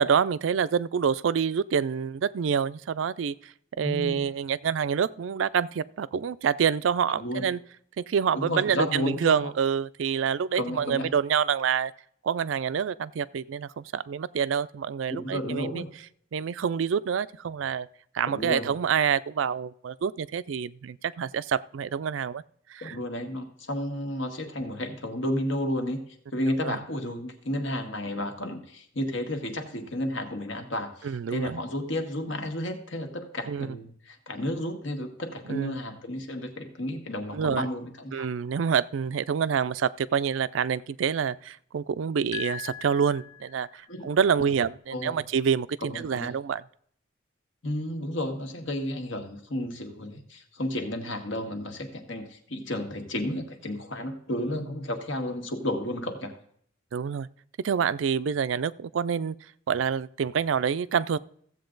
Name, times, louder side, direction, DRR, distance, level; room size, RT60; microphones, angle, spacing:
voice 1, 0.0-7.6 8.0-11.9 12.2-15.8 16.3-17.9 18.1-22.4 22.7-23.0 26.5-26.8 31.0-31.6 33.5-33.7 35.5-35.8 37.3-37.7 38.1-46.6 56.9-57.3 57.6-59.3 59.7-61.2, right 7 dB, 80° right, 0.4 m, -27 dB
voice 2, 3.8-4.2 7.2-7.5 8.3-9.5 10.5-11.1 15.1-15.9 18.3-18.7 22.8-26.0 26.3-38.3 43.9-44.1 44.9-45.2 45.9-46.3 47.6-56.3, left 1 dB, 80° left, 1.7 m, -32 dB
sound 1, 42.3-43.9, left 10 dB, 40° left, 0.7 m, -40 dB
15.0 x 7.7 x 3.9 m
head